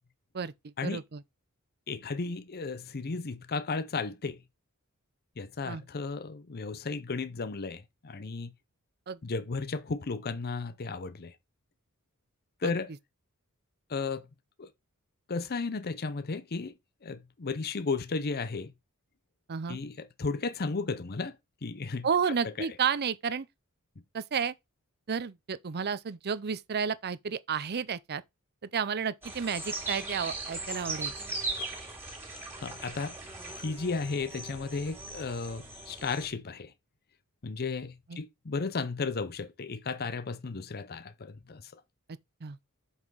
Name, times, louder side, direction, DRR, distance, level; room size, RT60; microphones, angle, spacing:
voice 1, 0.3-1.2 5.6-5.8 9.1-9.2 12.6-12.7 19.5-19.8 22.0-23.5 24.1-24.5 25.1-28.2 28.6-31.1 38.1-38.2 42.4-42.6, right 6 dB, 50° right, 0.6 m, -32 dB
voice 2, 1.9-4.4 5.4-8.5 9.2-11.3 12.6-12.9 13.9-14.3 14.6-14.7 15.3-16.7 17.0-18.7 19.7-21.4 21.6-22.1 22.6-22.7 32.4-33.2 33.5-36.7 37.4-41.8, left 4 dB, 45° left, 0.7 m, -34 dB
sound 1, 29.2-36.3, right 2 dB, 10° right, 3.1 m, -39 dB
7.7 x 5.5 x 4.0 m
head